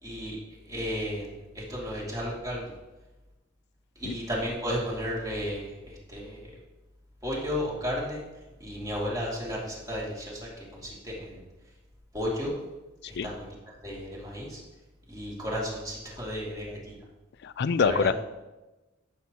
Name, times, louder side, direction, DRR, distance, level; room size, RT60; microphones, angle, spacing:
voice 1, 0.0-0.4 0.7-2.7 4.0-6.4 7.2-8.2 8.6-11.4 12.1-12.5 13.1-13.5 13.8-14.6 15.1-17.0 17.8-18.1, equal, 20° right, -5 dB, 2.6 m, -33 dB
voice 2, 17.4-18.1, left 5 dB, 55° left, 14 dB, 0.4 m, -25 dB
14.5 x 7.4 x 3.0 m, 1.1 s
head